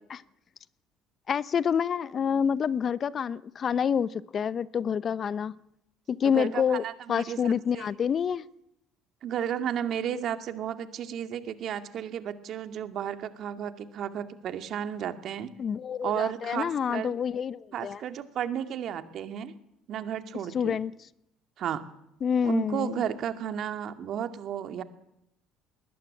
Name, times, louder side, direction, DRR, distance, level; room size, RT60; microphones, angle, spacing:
voice 1, 1.3-5.5 6.1-6.8 7.1-8.4 15.6-18.0 20.5-20.9 22.2-23.0, left 7 dB, 45° left, 0.9 m, -27 dB
voice 2, 6.3-7.9 9.2-15.5 16.0-17.1 17.7-19.5 19.9-20.8 21.6-21.8 22.4-24.8, right 9 dB, 55° right, 2.2 m, -33 dB
20.5 x 20.5 x 8.7 m
hypercardioid pair, 65°, 0 cm